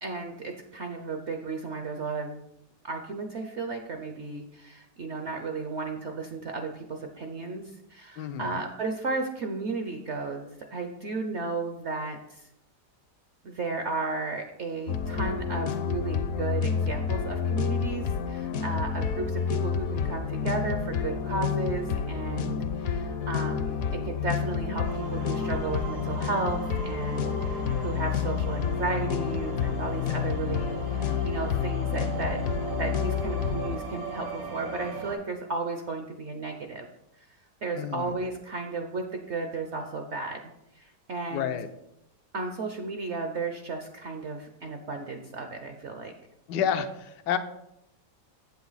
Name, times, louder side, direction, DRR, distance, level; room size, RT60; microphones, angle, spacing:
voice 1, 0.0-2.4 2.8-7.6 7.9-12.5 13.4-36.9 37.2-37.3 37.6-40.4 40.8-41.6 42.3-46.1, right 3 dB, 60° right, 4 dB, 0.7 m, -34 dB
voice 2, 8.2-8.6 37.7-38.1 41.3-41.7 46.5-47.4, left 8 dB, 80° left, 9 dB, 1.3 m, -29 dB
sound 1, 14.9-33.8, left 7 dB, 65° left, 1.0 m, -29 dB
sound 2, 24.8-35.1, right 3 dB, 75° right, 2.2 m, -38 dB
8.0 x 7.1 x 4.0 m, 0.82 s
omnidirectional pair, 1.9 m